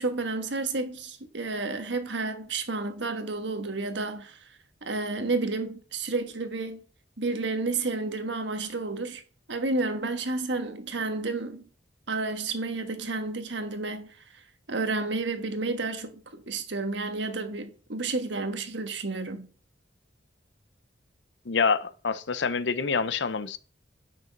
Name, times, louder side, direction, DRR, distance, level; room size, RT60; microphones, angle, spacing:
voice 1, 0.0-4.4 4.8-6.8 7.2-9.2 9.5-11.6 12.1-14.1 14.7-19.5, right 3 dB, 75° right, 1.4 m, -31 dB
voice 2, 21.5-23.6, left 5 dB, 70° left, 0.7 m, -26 dB
8.4 x 6.1 x 5.2 m
head